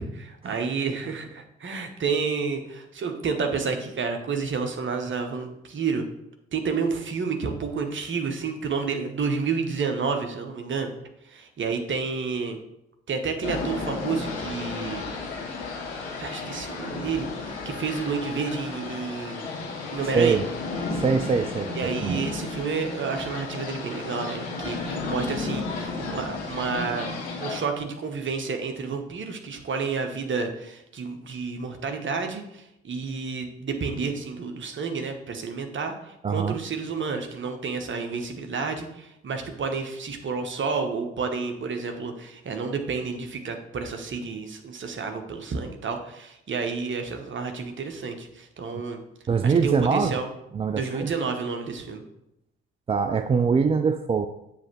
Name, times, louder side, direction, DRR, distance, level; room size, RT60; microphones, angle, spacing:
voice 1, 0.0-6.1 6.5-10.9 11.3-12.6 13.1-15.1 16.2-19.5 19.9-20.4 21.7-27.1 27.4-49.0 49.4-50.3 50.7-52.0, right 5 dB, 35° right, 5 dB, 1.1 m, -30 dB
sound 1, 13.4-27.6, left 3 dB, 80° left, 1.1 m, -33 dB
voice 2, 20.9-22.2 36.2-36.6 49.3-50.1 50.5-51.1 52.9-54.3, right 5 dB, 20° right, 8 dB, 0.3 m, -23 dB
7.6 x 3.4 x 6.0 m, 0.83 s
figure-of-eight pair, 40°, 32 cm